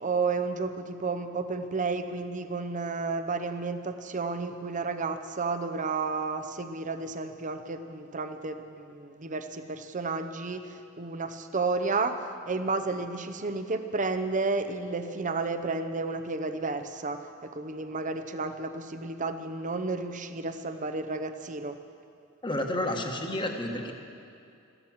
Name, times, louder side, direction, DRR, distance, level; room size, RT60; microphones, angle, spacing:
voice 1, 0.0-21.7, right 3 dB, 35° right, 9 dB, 0.8 m, -32 dB
voice 2, 22.4-23.9, left 1 dB, 25° left, 3 dB, 1.4 m, -30 dB
15.0 x 12.0 x 7.4 m, 2.5 s
head